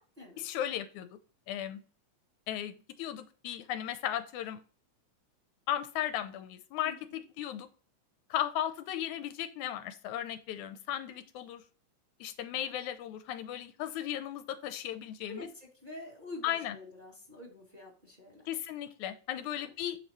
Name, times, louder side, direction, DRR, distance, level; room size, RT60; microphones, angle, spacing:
voice 1, 0.4-1.1 1.5-1.8 2.5-2.7 3.0-4.6 5.7-7.7 8.3-11.6 12.2-15.5 16.4-16.8 18.5-20.0, left 11 dB, 85° left, 9 dB, 2.0 m, -36 dB
voice 2, 6.8-7.2 15.3-18.5 19.3-19.7, left 2 dB, 15° right, -2 dB, 2.2 m, -47 dB
7.5 x 5.4 x 3.1 m, 0.37 s
omnidirectional pair, 3.4 m